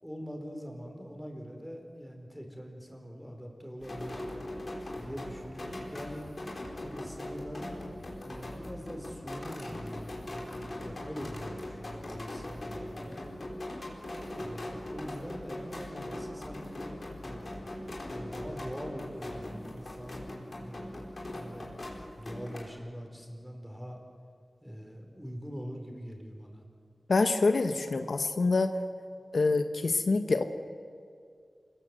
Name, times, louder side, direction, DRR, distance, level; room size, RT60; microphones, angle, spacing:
voice 1, 0.0-4.2 4.9-6.3 6.8-13.3 14.4-17.5 18.1-21.7 22.2-24.0 24.6-26.7, equal, 5° right, 2 dB, 4.9 m, -43 dB
sound 1, 3.8-22.7, left 1 dB, 50° left, 4.6 m, -41 dB
voice 2, 27.1-28.7 29.3-30.4, left 3 dB, 70° left, 7 dB, 1.1 m, -26 dB
28.0 x 20.0 x 8.0 m, 2.2 s
wide cardioid pair, 80°, 0 cm